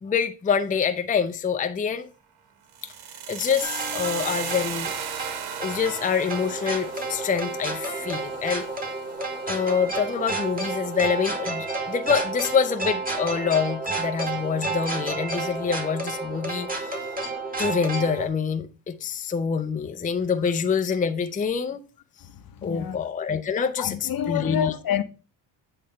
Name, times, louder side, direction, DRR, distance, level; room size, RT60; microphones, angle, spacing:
voice 1, 0.0-2.1 2.8-2.9 3.3-4.9 5.6-8.7 9.5-17.2 17.6-21.8 22.6-24.7, left 6 dB, 20° left, 0.5 m, -26 dB
sound 1, 2.7-10.7, right 8 dB, 60° right, 1.1 m, -37 dB
sound 2, 3.6-18.3, right 3 dB, 20° right, 1.9 m, -31 dB
voice 2, 22.6-23.0 23.8-25.0, left 10 dB, 50° left, 0.8 m, -27 dB
8.5 x 3.2 x 5.6 m
cardioid pair, 110°, 44 cm